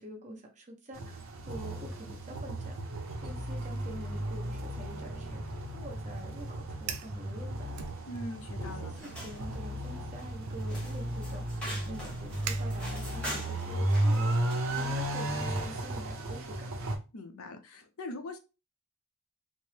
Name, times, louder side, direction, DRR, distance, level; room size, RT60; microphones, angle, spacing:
voice 1, 0.0-5.4 5.7-7.7 8.6-16.7, equal, 35° right, 1 dB, 0.9 m, -47 dB
sound 1, 0.9-17.0, right 1 dB, 60° right, 0.8 m, -34 dB
Fire, 6.7-7.2 7.7-8.5 8.9-9.2 9.9-13.3, right 8 dB, 85° right, 0.5 m, -44 dB
voice 2, 8.1-8.9 17.1-18.4, left 1 dB, 65° left, 7 dB, 0.6 m, -41 dB
sound 2, 8.9-15.1, equal, 5° left, 1.0 m, -44 dB
4.2 x 2.0 x 3.3 m, 0.29 s
head